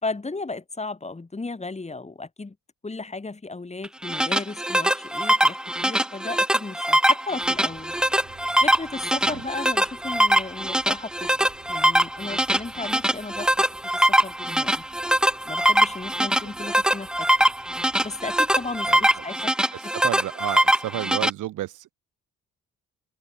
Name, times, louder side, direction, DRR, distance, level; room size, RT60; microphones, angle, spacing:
voice 1, 0.0-2.6 2.8-7.9 8.6-13.5 13.9-14.8 15.4-17.3 18.0-19.5 19.8-19.9, left 3 dB, 20° left, 6.4 m, -35 dB
sound 1, 3.8-21.3, right 1 dB, 5° right, 0.6 m, -22 dB
sound 2, 7.4-19.2, right 9 dB, 60° right, 7.0 m, -52 dB
voice 2, 18.9-19.3 19.7-21.9, right 14 dB, 85° right, 6.2 m, -32 dB
open air
cardioid pair, 90°, 30 cm